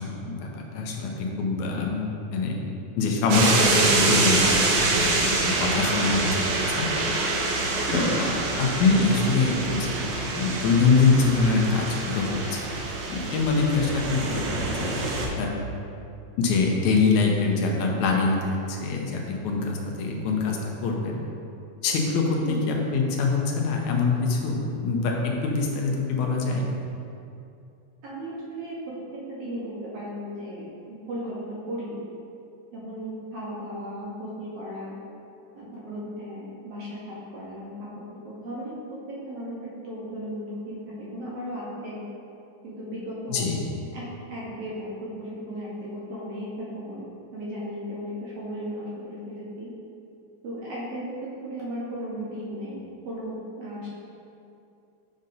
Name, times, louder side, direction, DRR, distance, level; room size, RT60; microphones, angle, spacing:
voice 1, 0.0-2.6 3.0-6.9 7.9-12.8 13.1-15.5 16.4-21.2 21.8-26.7 43.3-43.6, left 4 dB, 85° left, 0 dB, 2.1 m, -24 dB
sound 1, 3.3-15.3, right 3 dB, 80° right, 1.2 m, -26 dB
voice 2, 28.0-28.8 29.1-32.0 32.7-35.0 35.5-38.7 39.2-42.0 42.6-43.6 43.9-44.0 44.3-47.0 47.3-49.7 50.4-52.8 53.1-53.9, equal, 65° right, -7 dB, 1.9 m, -36 dB
7.5 x 5.3 x 2.6 m, 2.6 s
omnidirectional pair, 3.4 m